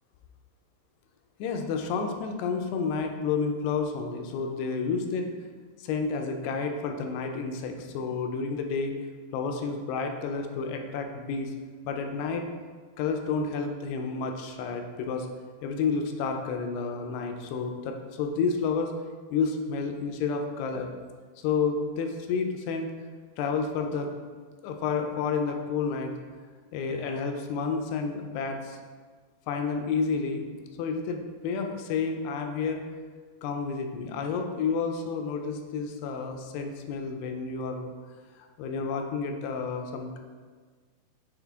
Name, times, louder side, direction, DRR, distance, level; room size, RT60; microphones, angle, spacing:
voice 1, 1.4-5.3 5.8-8.9 9.3-11.5 11.8-12.5 13.0-15.3 15.6-18.9 19.3-20.9 21.4-22.9 23.4-24.1 24.6-26.1 26.7-28.8 29.5-30.5 30.8-32.8 33.4-37.9 38.4-40.2, left 5 dB, 80° left, 4 dB, 2.5 m, -30 dB
8.2 x 3.2 x 3.5 m, 1.5 s
omnidirectional pair, 4.7 m